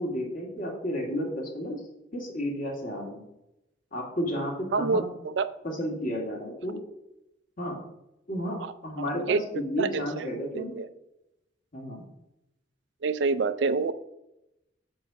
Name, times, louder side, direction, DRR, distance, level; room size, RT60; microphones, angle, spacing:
voice 1, 0.0-1.8 2.1-3.2 3.9-5.1 5.8-6.8 7.6-7.8 8.3-10.8 11.7-12.0, equal, 50° left, -1 dB, 2.0 m, -32 dB
voice 2, 4.7-5.5 8.6-10.9 13.0-13.9, right 4 dB, 65° right, 13 dB, 0.4 m, -28 dB
7.4 x 4.6 x 5.8 m, 0.90 s
head